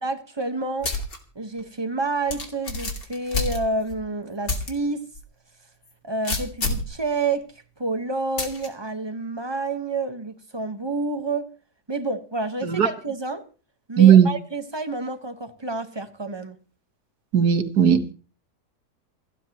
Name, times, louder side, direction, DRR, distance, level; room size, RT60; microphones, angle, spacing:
voice 1, 0.0-0.9 1.3-5.1 6.0-7.5 7.8-11.5 11.9-13.4 13.9-16.6, right 3 dB, 20° right, 1.2 m, -29 dB
sound 1, 0.8-1.2 1.6-1.7 2.3-4.0 4.5-4.7 5.1-5.2 6.2-6.9 8.4-8.7, left 3 dB, 65° left, 3.0 m, -28 dB
voice 2, 14.0-14.3 17.3-18.1, right 9 dB, 80° right, 1.9 m, -16 dB
28.5 x 9.9 x 3.0 m
omnidirectional pair, 1.7 m